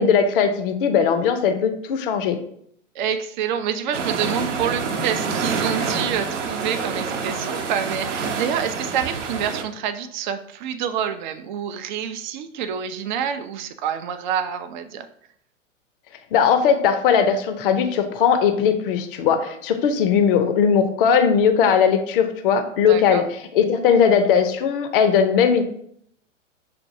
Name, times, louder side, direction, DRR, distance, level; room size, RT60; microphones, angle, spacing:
voice 1, 0.0-2.4 16.3-23.2 23.5-25.6, left 7 dB, 45° left, 8 dB, 0.6 m, -19 dB
voice 2, 2.9-15.1 22.9-23.3, right 8 dB, 40° right, 10 dB, 0.4 m, -27 dB
sound 1, 3.9-9.6, right 5 dB, 70° right, 0.7 m, -27 dB
6.5 x 2.2 x 2.6 m, 0.68 s
figure-of-eight pair, 105°, 38 cm